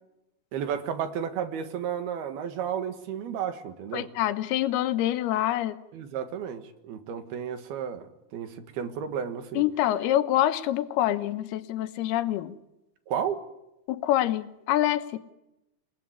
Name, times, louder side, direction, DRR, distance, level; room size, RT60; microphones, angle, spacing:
voice 1, 0.5-4.1 5.9-8.1 8.3-9.6 13.1-13.5, right 8 dB, 80° right, 9 dB, 3.7 m, -32 dB
voice 2, 3.9-5.8 9.6-12.6 13.9-15.2, left 13 dB, 85° left, 11 dB, 3.1 m, -26 dB
29.0 x 19.0 x 9.6 m, 0.93 s
omnidirectional pair, 4.4 m